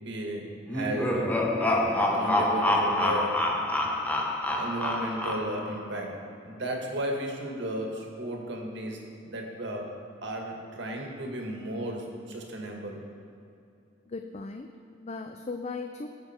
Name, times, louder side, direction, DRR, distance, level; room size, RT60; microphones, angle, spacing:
voice 1, 0.0-1.4 2.0-3.4 4.6-9.9 10.2-13.0, right 1 dB, 65° right, 1 dB, 1.8 m, -34 dB
sound 1, 0.7-5.8, left 1 dB, 10° left, 0.9 m, -27 dB
voice 2, 14.1-16.1, left 3 dB, 35° left, 6 dB, 0.5 m, -38 dB
18.0 x 6.7 x 4.5 m, 2.6 s
head